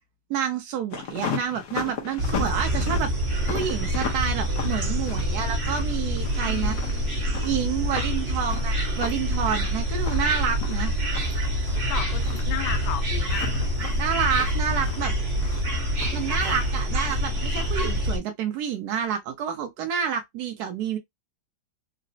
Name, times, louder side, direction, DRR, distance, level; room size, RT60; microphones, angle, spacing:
voice 1, 0.3-3.1 3.5-6.8 7.4-10.9 14.0-15.1 16.1-21.0, right 8 dB, 80° right, 0.9 m, -28 dB
sound 1, 0.9-18.0, left 7 dB, 65° left, 0.9 m, -38 dB
sound 2, 2.2-18.2, equal, 45° right, 0.9 m, -26 dB
voice 2, 6.4-7.5 11.9-13.5, left 10 dB, 80° left, 1.5 m, -35 dB
3.8 x 2.0 x 2.6 m
omnidirectional pair, 2.2 m